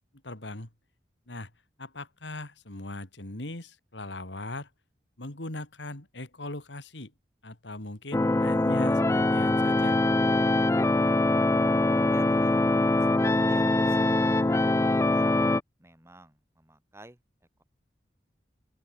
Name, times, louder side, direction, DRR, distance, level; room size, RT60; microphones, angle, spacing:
voice 1, 0.2-0.7 1.3-1.5 1.8-4.7 5.2-7.1 7.4-10.0, left 2 dB, 90° left, 3.0 m, -39 dB
sound 1, 8.1-15.6, left 2 dB, 15° left, 0.4 m, -23 dB
voice 2, 11.5-12.6 13.1-15.4 15.8-17.2, right 1 dB, 15° right, 2.6 m, -50 dB
open air
head